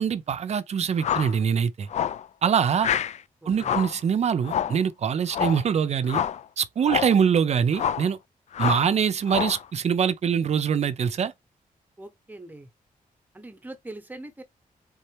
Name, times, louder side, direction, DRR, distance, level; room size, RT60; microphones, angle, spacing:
voice 1, 0.0-1.9 2.4-2.9 3.5-6.2 6.6-8.2 8.6-11.3, right 7 dB, 50° right, 0.5 m, -24 dB
sound 1, 1.0-1.4 1.9-2.2 2.8-3.2 3.6-4.0 4.4-4.8 5.3-5.6 6.1-6.4 6.8-7.2 7.7-8.1 8.5-8.9 9.3-9.6, left 9 dB, 50° left, 0.4 m, -27 dB
voice 2, 3.4-3.8 12.0-12.7 13.3-14.4, right 2 dB, 10° right, 1.0 m, -42 dB
4.2 x 3.8 x 3.3 m
wide cardioid pair, 145°, 15 cm